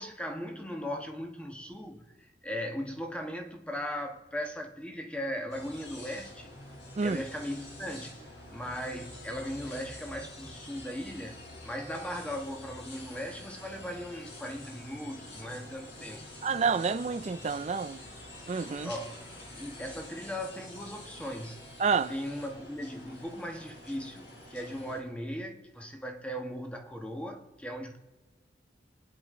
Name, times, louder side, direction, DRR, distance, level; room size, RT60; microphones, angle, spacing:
voice 1, 0.0-2.1 2.4-6.6 7.0-16.3 18.8-19.3 19.6-21.6 22.1-28.0, equal, 5° left, 1.2 m, -38 dB
sound 1, 5.5-25.0, left 1 dB, 65° left, 4.4 m, -47 dB
voice 2, 16.4-18.0 18.5-18.9 21.8-22.1, right 5 dB, 35° right, 0.4 m, -28 dB
24.5 x 9.9 x 3.7 m
head